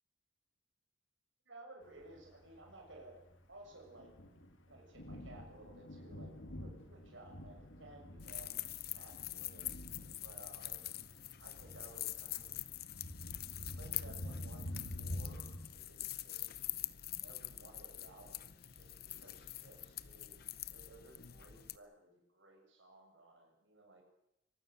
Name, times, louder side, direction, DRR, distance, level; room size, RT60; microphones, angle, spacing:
voice 1, 1.5-3.2 3.5-4.1 4.7-9.7 10.2-11.1 11.4-12.7 13.7-16.6 17.2-24.0, right 2 dB, 75° right, 1 dB, 6.9 m, -57 dB
Thunder, 2.0-15.7, left 1 dB, 85° left, 2.7 m, -48 dB
sound 1, 8.2-21.8, left 14 dB, 50° left, 0.8 m, -45 dB
24.0 x 19.5 x 6.7 m, 0.84 s
head